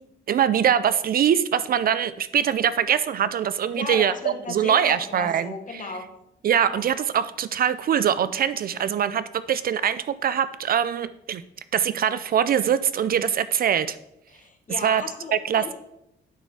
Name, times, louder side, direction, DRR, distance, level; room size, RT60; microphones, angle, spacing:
voice 1, 0.3-5.8 6.4-11.4 11.7-14.0 14.8-15.0 15.3-15.7, right 9 dB, 50° right, 15 dB, 0.4 m, -23 dB
voice 2, 3.7-6.1 6.7-6.8 14.3-15.7, left 4 dB, 40° left, 5 dB, 1.3 m, -36 dB
9.1 x 4.2 x 4.7 m, 0.83 s
cardioid pair, 90°, 20 cm